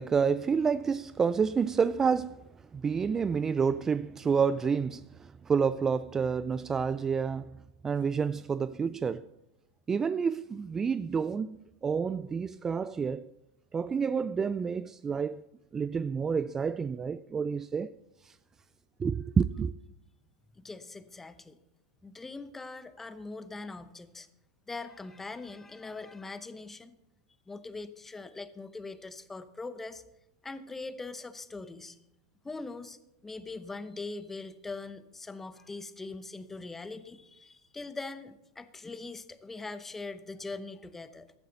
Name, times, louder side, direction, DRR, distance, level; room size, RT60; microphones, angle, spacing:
voice 1, 0.0-2.4 2.7-7.5 7.8-9.2 9.9-13.3 13.7-15.4 15.7-17.9 18.2-18.3 19.0-19.7, right 6 dB, 20° right, 0.3 m, -29 dB
voice 2, 20.5-21.6 22.0-24.3 24.7-26.9 27.5-30.0 30.4-32.0 32.4-33.0 33.2-41.3, left 3 dB, 15° left, 0.9 m, -42 dB
15.5 x 11.5 x 4.0 m
hypercardioid pair, 105°, 2 cm